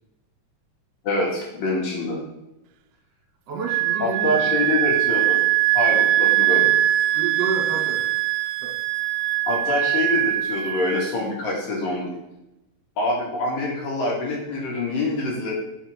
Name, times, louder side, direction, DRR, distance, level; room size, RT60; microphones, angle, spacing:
voice 1, 1.0-2.2 4.0-5.4 5.7-6.7 9.5-12.1 13.0-15.5, left 2 dB, 90° left, -2 dB, 3.9 m, -25 dB
voice 2, 3.5-4.7 7.1-8.0 8.6-8.7, right 5 dB, 55° right, -2 dB, 3.0 m, -30 dB
Wind instrument woodwind instrument, 3.7-11.1, right 15 dB, 85° right, 2.1 m, -22 dB
9.0 x 7.0 x 3.6 m, 0.91 s
omnidirectional pair, 3.8 m